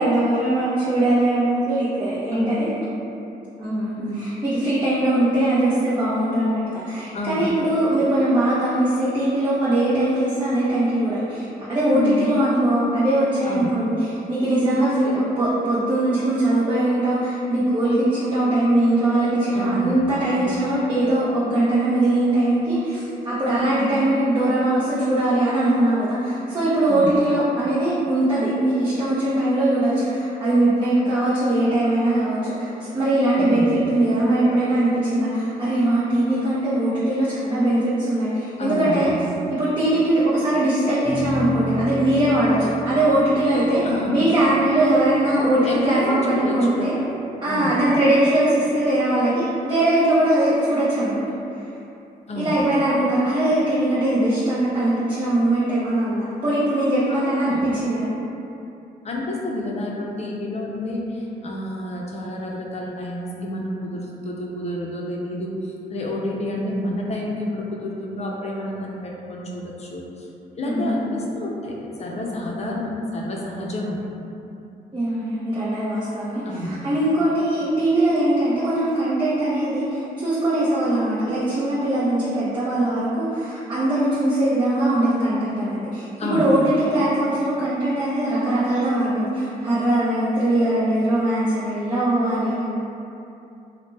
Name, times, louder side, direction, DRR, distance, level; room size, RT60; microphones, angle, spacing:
voice 1, 0.0-2.7 3.6-39.1 39.5-43.8 44.1-46.9 47.4-51.4 52.4-58.1 70.6-70.9 74.9-92.6, right 1 dB, 30° right, -10 dB, 0.6 m, -21 dB
voice 2, 2.3-2.7 4.0-4.3 7.1-7.5 11.9-12.3 13.4-13.8 19.5-20.1 20.3-20.8 23.5-24.0 26.9-27.2 33.3-33.8 38.6-39.6 43.8-44.2 45.6-47.8 52.3-52.6 57.1-57.7 59.0-70.3 70.6-74.0 76.4-76.8 86.2-86.5, left 1 dB, 40° left, -2 dB, 0.5 m, -29 dB
sound 1, 41.0-47.6, left 1 dB, 45° right, 1.2 m, -33 dB
2.9 x 2.1 x 3.2 m, 2.8 s
cardioid pair, 80°, 16 cm